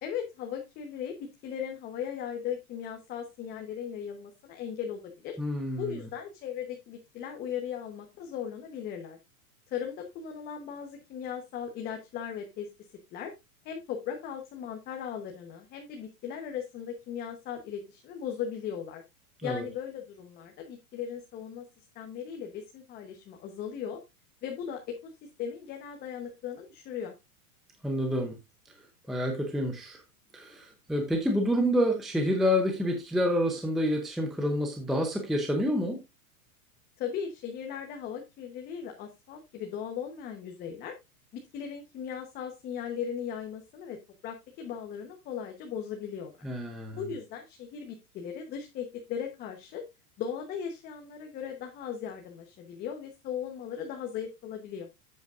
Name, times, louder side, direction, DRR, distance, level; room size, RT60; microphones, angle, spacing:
voice 1, 0.0-5.4 5.8-9.2 9.7-12.7 13.1-13.3 13.6-19.0 19.4-21.6 21.9-24.0 24.4-25.0 25.4-27.1 37.0-40.9 41.3-44.0 44.2-46.3 46.9-49.8 50.2-54.9, left 8 dB, 20° left, 3 dB, 1.0 m, -37 dB
voice 2, 5.4-6.0 19.4-19.6 27.8-28.4 29.1-30.0 30.3-36.0 46.4-47.0, equal, ahead, 3 dB, 0.6 m, -28 dB
10.5 x 8.1 x 2.5 m, 0.22 s
supercardioid pair, 160°, 45 cm